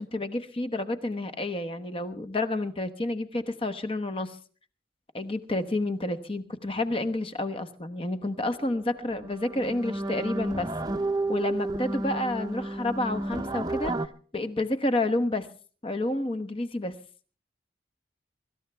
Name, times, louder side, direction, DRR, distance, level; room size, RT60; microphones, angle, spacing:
voice 1, 0.0-4.4 5.1-10.7 11.3-13.9 14.3-15.5 15.8-16.9, left 2 dB, 30° left, 10 dB, 1.1 m, -29 dB
sound 1, 8.7-8.8 9.1-14.1, right 2 dB, 20° right, 0.7 m, -31 dB
24.5 x 13.5 x 3.4 m, 0.39 s
head